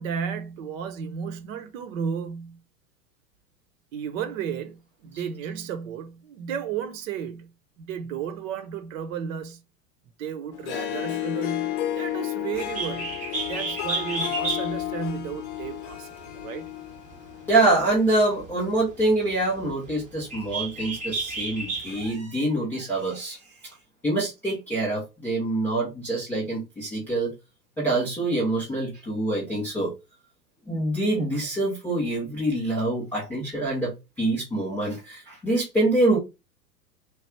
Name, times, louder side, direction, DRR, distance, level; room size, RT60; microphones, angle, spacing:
voice 1, 0.0-2.6 3.9-7.5 7.8-9.6 10.2-13.2 13.4-16.7, right 7 dB, 55° right, 0.8 m, -33 dB
Harp, 10.5-18.0, left 13 dB, 50° left, 0.7 m, -32 dB
Bird, 12.5-22.1, right 3 dB, 15° right, 0.7 m, -34 dB
voice 2, 17.5-23.4 24.0-27.3 27.8-29.9 30.7-36.2, right 2 dB, 5° left, 0.3 m, -25 dB
3.3 x 2.3 x 4.3 m
hypercardioid pair, 100°, 49 cm